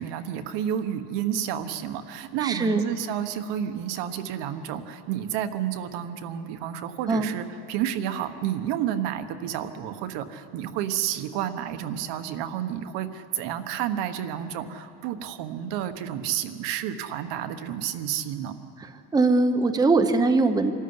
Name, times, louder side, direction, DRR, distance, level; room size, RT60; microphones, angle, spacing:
voice 1, 0.0-18.6, right 10 dB, 70° right, 9 dB, 1.4 m, -30 dB
voice 2, 2.4-2.8 7.1-7.3 18.8-20.7, right 3 dB, 10° right, 8 dB, 0.8 m, -22 dB
25.0 x 13.5 x 9.7 m, 2.9 s
cardioid pair, 145°, 43 cm